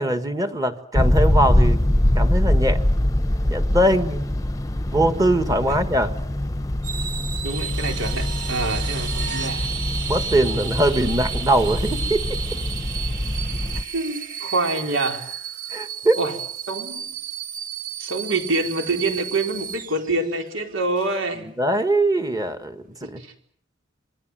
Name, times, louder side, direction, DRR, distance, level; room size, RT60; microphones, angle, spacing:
voice 1, 0.0-1.8 2.1-2.8 3.5-4.3 4.9-6.1 10.1-12.4 15.7-16.2 21.6-23.2, right 1 dB, 20° right, 9 dB, 1.7 m, -21 dB
sound 1, 0.9-13.8, left 1 dB, 15° left, 1.0 m, -23 dB
sound 2, 6.8-20.5 21.0-21.2, right 8 dB, 45° right, 1.1 m, -34 dB
sound 3, 7.4-16.1 18.5-18.6, right 5 dB, 60° right, 3.7 m, -37 dB
voice 2, 7.4-9.7 13.9-15.2 16.1-16.3 16.7-17.1 18.0-21.5 23.2-23.3, right 2 dB, 80° right, 4 dB, 4.6 m, -26 dB
26.5 x 21.5 x 7.7 m, 0.64 s
head